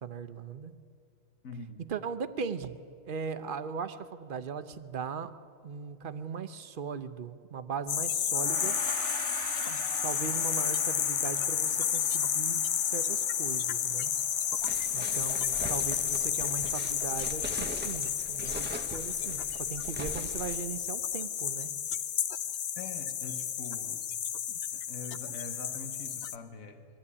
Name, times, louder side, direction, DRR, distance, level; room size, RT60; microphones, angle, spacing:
voice 1, 0.0-0.7 1.8-2.8 3.0-5.4 5.6-8.8 9.6-14.1 14.9-21.7, right 6 dB, 45° right, 12 dB, 0.8 m, -39 dB
voice 2, 1.4-1.8 22.8-24.0 24.7-26.9, left 3 dB, 85° left, 7 dB, 1.7 m, -44 dB
sound 1, 7.9-26.4, left 9 dB, 55° left, 0.8 m, -31 dB
Gong, 8.3-17.9, right 7 dB, 80° right, 1.3 m, -45 dB
sound 2, 14.6-20.6, right 1 dB, 10° right, 0.8 m, -42 dB
22.0 x 14.5 x 9.8 m, 2.4 s
omnidirectional pair, 1.4 m